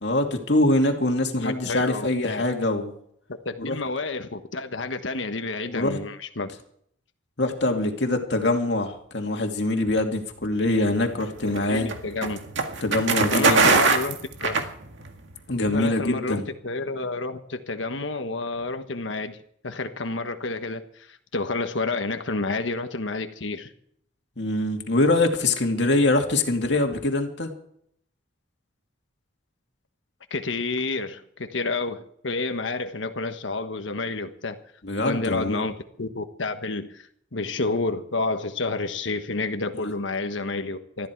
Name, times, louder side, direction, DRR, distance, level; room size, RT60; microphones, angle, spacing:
voice 1, 0.0-2.9 3.6-3.8 5.7-6.0 7.4-11.9 12.8-13.7 15.5-16.4 24.4-27.5 34.8-35.6, left 2 dB, 65° left, 3 dB, 2.5 m, -24 dB
voice 2, 1.3-2.4 3.4-6.5 11.5-12.4 13.3-14.6 15.7-19.4 19.6-23.7 30.3-34.6 35.0-41.1, left 3 dB, 80° left, 7 dB, 1.3 m, -30 dB
sound 1, 10.8-15.3, right 4 dB, 75° right, 1.9 m, -22 dB
20.0 x 13.5 x 4.7 m, 0.67 s
head